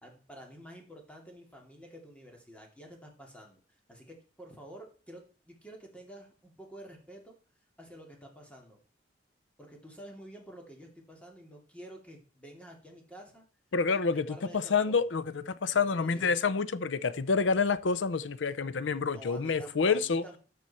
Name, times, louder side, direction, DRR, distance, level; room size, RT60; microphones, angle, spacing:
voice 1, 0.0-3.6 3.9-7.4 7.8-8.8 9.6-13.4 13.9-15.1 15.7-16.3 19.1-20.4, equal, 5° left, 2.6 m, -50 dB
voice 2, 13.7-20.2, left 5 dB, 80° left, 0.6 m, -28 dB
12.5 x 6.9 x 4.3 m
head